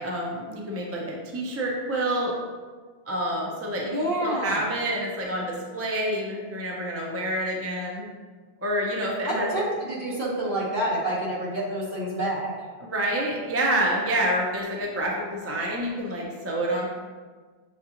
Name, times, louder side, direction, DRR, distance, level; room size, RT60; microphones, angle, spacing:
voice 1, 0.0-2.3 3.1-3.9 4.2-8.0 8.6-9.5 12.8-16.9, right 1 dB, 20° right, -2 dB, 0.4 m, -28 dB
voice 2, 3.9-4.6 9.2-12.5, right 1 dB, 55° right, -6 dB, 1.3 m, -28 dB
6.4 x 2.4 x 2.9 m, 1.5 s
omnidirectional pair, 1.0 m